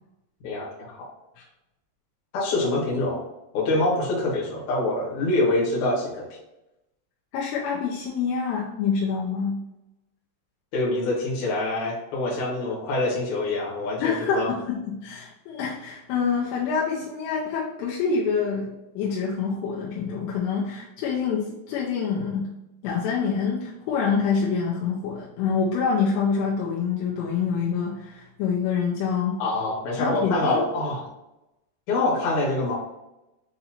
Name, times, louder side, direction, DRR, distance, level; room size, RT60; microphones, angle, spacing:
voice 1, 0.4-1.1 2.3-3.2 3.5-6.3 10.7-14.5 29.4-31.0 31.9-32.7, left 2 dB, 60° left, -5 dB, 2.0 m, -25 dB
voice 2, 7.3-9.6 14.0-22.5 22.8-29.4 30.0-30.6, left 6 dB, 80° left, -4 dB, 2.7 m, -26 dB
6.8 x 2.6 x 2.8 m, 0.93 s
omnidirectional pair, 5.2 m